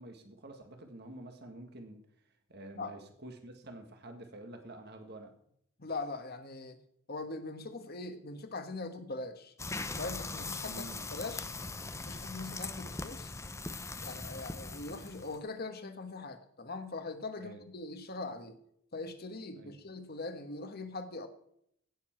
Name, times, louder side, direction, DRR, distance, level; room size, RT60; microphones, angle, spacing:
voice 1, 0.0-2.0 2.5-5.3 10.6-11.1 17.4-17.6 19.5-19.8, right 1 dB, 50° right, 5 dB, 1.7 m, -48 dB
voice 2, 5.8-6.8 7.1-9.5 10.0-11.5 12.1-13.3 14.0-18.6 18.9-21.3, left 3 dB, 50° left, 7 dB, 1.5 m, -41 dB
sound 1, 9.6-15.4, left 3 dB, 15° left, 0.6 m, -40 dB
16.5 x 7.1 x 4.5 m, 0.69 s
head